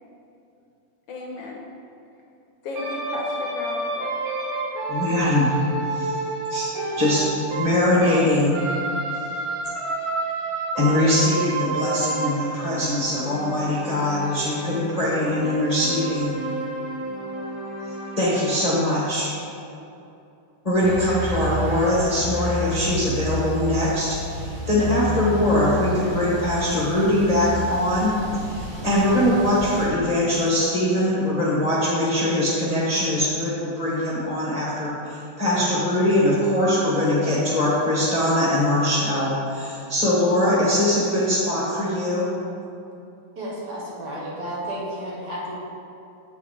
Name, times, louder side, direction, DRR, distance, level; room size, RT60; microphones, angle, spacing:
voice 1, 1.1-1.6 2.6-4.1, left 2 dB, 70° left, -1 dB, 1.2 m, -34 dB
sound 1, 2.7-8.2 8.5-18.8, right 2 dB, 80° right, 2.3 m, -30 dB
voice 2, 4.9-5.5 5.9-6.1 6.5-6.7 7.0-8.6 10.7-16.4 18.2-19.3 20.6-28.2 28.5-42.3, left 1 dB, 30° left, -8 dB, 0.7 m, -22 dB
sound 2, 20.8-29.9, equal, 30° right, 1.4 m, -31 dB
voice 3, 43.4-45.6, right 1 dB, 55° right, -5 dB, 1.6 m, -32 dB
8.3 x 4.6 x 3.7 m, 2.7 s
omnidirectional pair, 2.4 m